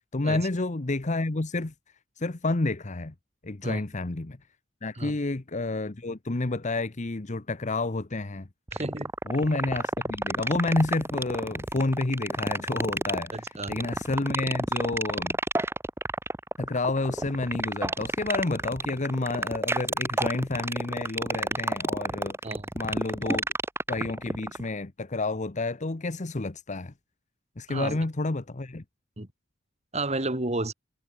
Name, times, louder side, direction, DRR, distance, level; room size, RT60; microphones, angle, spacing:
voice 1, 0.1-1.7 2.2-3.1 3.4-4.4 4.8-8.5 9.3-15.4 16.6-22.4 22.7-23.4 23.9-26.9 27.6-28.8, left 2 dB, 40° left, 0.9 m, -29 dB
sound 1, 8.7-24.6, right 2 dB, 15° right, 1.1 m, -29 dB
voice 2, 8.7-9.1 13.3-13.7 22.4-22.7 27.7-28.0 29.2-29.3 29.9-30.7, right 2 dB, 35° right, 3.1 m, -31 dB
head